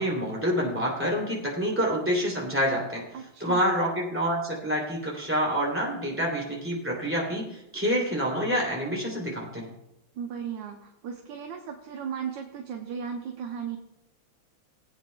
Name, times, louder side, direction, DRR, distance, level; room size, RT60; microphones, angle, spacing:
voice 1, 0.0-3.0 3.4-9.7, equal, 5° right, -3 dB, 2.8 m, -27 dB
voice 2, 3.1-3.7 10.2-13.8, right 7 dB, 65° right, 3 dB, 1.4 m, -36 dB
21.0 x 8.7 x 2.3 m, 0.86 s
omnidirectional pair, 2.3 m